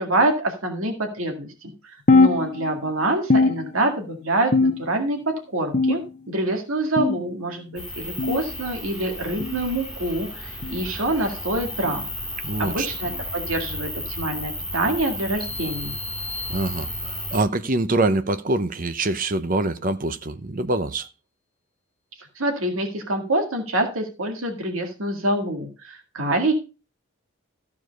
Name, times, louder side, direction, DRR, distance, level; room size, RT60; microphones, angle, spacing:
voice 1, 0.0-6.0 6.3-12.1 12.6-15.9 22.2-26.5, right 1 dB, 75° right, 2.0 m, -26 dB
sound 1, 2.1-2.9 3.3-4.1 4.5-5.1 5.7-6.3 7.0-7.3 8.2-8.4 9.4-9.6 10.6-10.8 11.8-12.0 13.1-13.2 14.3-14.5 15.5-15.6 16.7-16.8, left 3 dB, 35° left, 0.6 m, -21 dB
sound 2, 7.7-17.4, left 1 dB, 5° right, 3.5 m, -33 dB
voice 2, 12.4-12.9 16.5-21.1, right 2 dB, 40° right, 0.8 m, -24 dB
sound 3, 15.4-17.3, left 3 dB, 20° right, 1.0 m, -40 dB
14.0 x 4.8 x 5.3 m
head